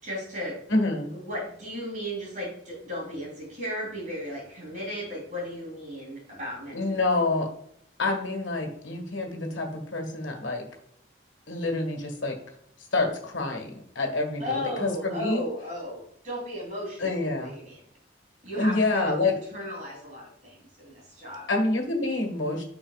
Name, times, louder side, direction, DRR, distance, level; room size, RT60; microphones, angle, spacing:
voice 1, 0.0-0.6 1.1-7.0 14.4-17.8 18.4-21.5, equal, 40° right, -3 dB, 3.1 m, -35 dB
voice 2, 0.7-1.1 6.7-7.5 8.0-10.6 11.5-12.4 12.9-15.4 17.0-17.5 18.5-19.3 21.5-22.6, left 2 dB, 85° left, 2 dB, 1.6 m, -27 dB
9.5 x 6.2 x 2.4 m, 0.69 s
head